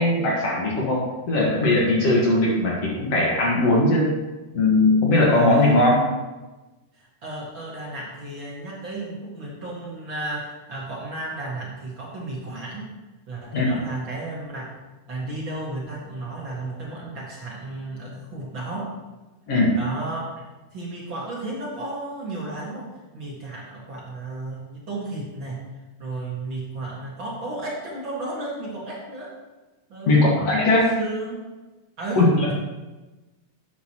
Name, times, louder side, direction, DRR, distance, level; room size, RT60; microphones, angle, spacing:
voice 1, 0.0-4.1 4.5-6.1 13.5-13.8 19.5-19.8 30.1-30.9 32.2-32.5, left 2 dB, 55° left, -3 dB, 2.4 m, -19 dB
voice 2, 5.3-5.8 6.9-12.9 13.3-14.6 15.1-18.9 19.7-25.7 26.0-29.4 29.9-31.4 32.0-32.5, right 2 dB, 45° right, -5 dB, 2.2 m, -33 dB
11.0 x 9.3 x 3.0 m, 1.1 s
omnidirectional pair, 3.7 m